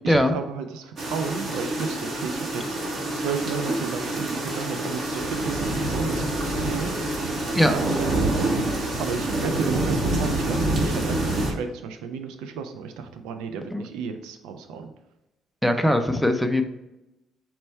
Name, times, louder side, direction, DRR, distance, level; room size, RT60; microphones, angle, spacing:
voice 1, 0.0-7.4 7.6-14.9, right 6 dB, 85° right, 7 dB, 0.3 m, -33 dB
sound 1, 1.0-11.5, right 2 dB, 55° right, 1.2 m, -26 dB
voice 2, 15.6-16.6, left 1 dB, ahead, 5 dB, 0.4 m, -20 dB
4.3 x 2.2 x 4.2 m, 0.94 s
supercardioid pair, 75°, 0 cm